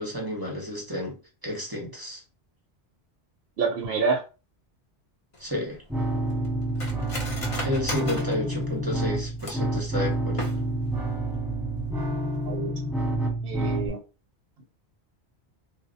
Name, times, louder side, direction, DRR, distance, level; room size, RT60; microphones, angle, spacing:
voice 1, 0.0-2.2 5.4-5.8 7.6-10.4, left 1 dB, 25° right, 0.6 m, -31 dB
voice 2, 3.6-4.2 12.4-12.7 13.4-14.0, right 4 dB, 70° right, 0.8 m, -27 dB
Cutlery silverware, 5.3-9.8 10.2-10.9 11.3-11.4 11.7-12.1 12.4-12.6, left 1 dB, 35° left, 0.6 m, -37 dB
sound 1, 5.9-13.9, right 1 dB, ahead, 1.0 m, -28 dB
2.0 x 2.0 x 3.7 m
omnidirectional pair, 1.1 m